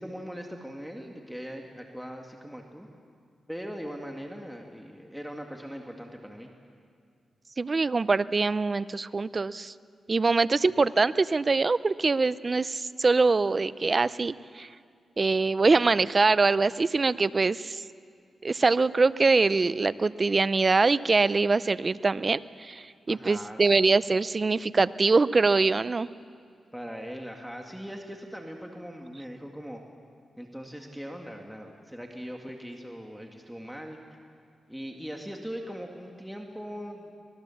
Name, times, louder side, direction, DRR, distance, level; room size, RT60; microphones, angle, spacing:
voice 1, 0.0-2.9 3.5-6.5 23.1-23.9 26.7-29.8 30.4-34.0 34.7-37.1, equal, ahead, 1 dB, 2.0 m, -40 dB
voice 2, 7.6-9.7 10.1-14.7 15.2-17.8 18.4-26.1, right 3 dB, 40° right, 16 dB, 0.6 m, -24 dB
25.0 x 19.5 x 7.2 m, 2.2 s
cardioid pair, 70°, 0 cm